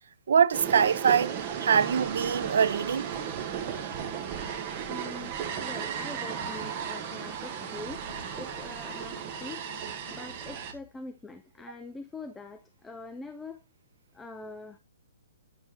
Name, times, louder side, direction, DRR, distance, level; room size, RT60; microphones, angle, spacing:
voice 1, 0.3-1.3 1.6-3.1, right 7 dB, 65° right, 0.7 m, -23 dB
sound 1, 0.5-10.7, right 8 dB, 25° right, 1.2 m, -35 dB
voice 2, 4.9-5.3 5.6-8.0 8.3-9.6 10.1-13.6 14.1-14.8, left 3 dB, 5° left, 0.4 m, -43 dB
Drum kit / Drum, 6.4-11.2, left 4 dB, 35° left, 2.4 m, -53 dB
9.8 x 6.7 x 2.8 m
hypercardioid pair, 175°, 0 cm